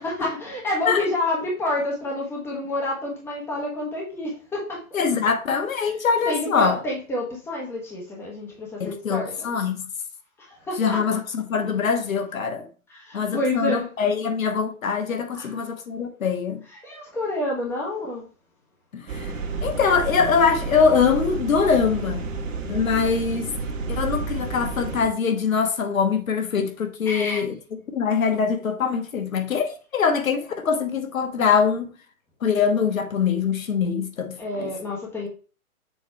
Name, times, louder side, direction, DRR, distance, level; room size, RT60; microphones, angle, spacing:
voice 1, 0.0-4.8 6.3-9.3 10.4-11.2 12.9-13.9 15.3-15.5 16.8-18.3 27.1-27.4 34.4-35.3, left 1 dB, 5° left, 1.2 m, -28 dB
voice 2, 4.9-6.8 8.8-9.9 10.8-12.7 13.1-16.6 18.9-19.3 19.6-22.3 22.7-23.5 23.9-27.5 27.9-31.9 32.4-34.7, left 6 dB, 70° left, 1.3 m, -23 dB
sound 1, 19.1-25.1, right 3 dB, 60° right, 1.5 m, -30 dB
7.0 x 3.1 x 4.4 m
hypercardioid pair, 145°, 43 cm